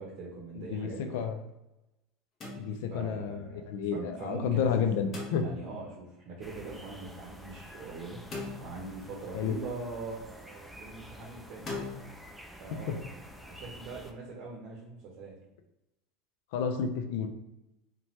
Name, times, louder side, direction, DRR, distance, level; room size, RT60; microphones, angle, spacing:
voice 1, 0.0-1.2 2.9-3.6 3.9-4.7 5.3-8.2 8.6-11.7 12.6-15.3, right 3 dB, 55° right, -2 dB, 0.7 m, -42 dB
voice 2, 0.6-1.4 2.6-5.5 9.3-9.6 12.9-13.0 16.5-17.3, left 7 dB, 75° left, 7 dB, 0.3 m, -31 dB
sound 1, 2.4-3.2 5.1-5.9 8.3-9.2 11.7-12.0, left 3 dB, 35° left, 0.8 m, -40 dB
sound 2, 6.4-14.1, equal, ahead, 0.3 m, -49 dB
2.7 x 2.2 x 3.1 m, 0.96 s
supercardioid pair, 115°, 0 cm